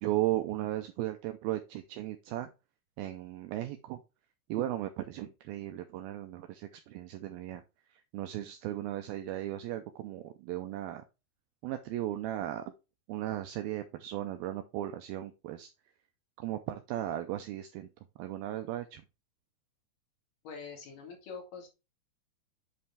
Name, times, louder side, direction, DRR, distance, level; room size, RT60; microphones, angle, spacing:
voice 1, 0.0-2.5 3.0-4.0 4.5-7.6 7.9-11.0 11.6-12.7 13.1-15.7 16.4-17.9 18.2-19.0, right 13 dB, 80° right, 7 dB, 2.2 m, -36 dB
voice 2, 20.4-21.7, left 5 dB, 60° left, 2 dB, 3.6 m, -44 dB
7.9 x 5.5 x 3.4 m, 0.27 s
omnidirectional pair, 4.7 m